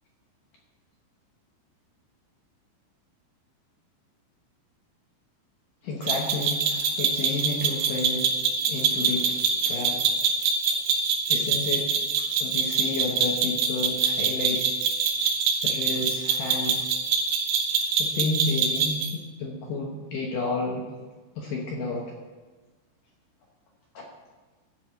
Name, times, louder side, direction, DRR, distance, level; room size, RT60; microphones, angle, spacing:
voice 1, 5.8-8.3 8.7-10.3 11.3-12.0 12.4-14.7 15.2-15.3 15.6-16.9 17.8-20.9 21.4-22.1 23.9-24.1, left 3 dB, 70° left, -1 dB, 2.0 m, -31 dB
sound 1, 6.1-19.1, right 5 dB, 70° right, 2.3 m, -25 dB
13.5 x 4.8 x 8.2 m, 1.3 s
omnidirectional pair, 5.2 m